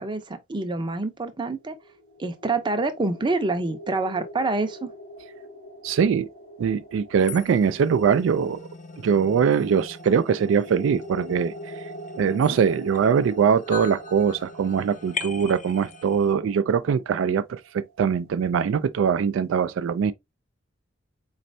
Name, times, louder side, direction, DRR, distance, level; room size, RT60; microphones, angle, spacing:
voice 1, 0.0-1.8 2.2-4.9, right 3 dB, 25° right, 0.6 m, -27 dB
sound 1, 1.6-18.4, right 1 dB, 75° left, 1.4 m, -44 dB
voice 2, 5.8-6.3 6.6-8.6 9.0-11.5 12.2-20.1, right 7 dB, 80° right, 0.3 m, -22 dB
sound 2, 7.2-16.3, left 5 dB, 40° left, 0.5 m, -41 dB
4.2 x 3.1 x 2.6 m
head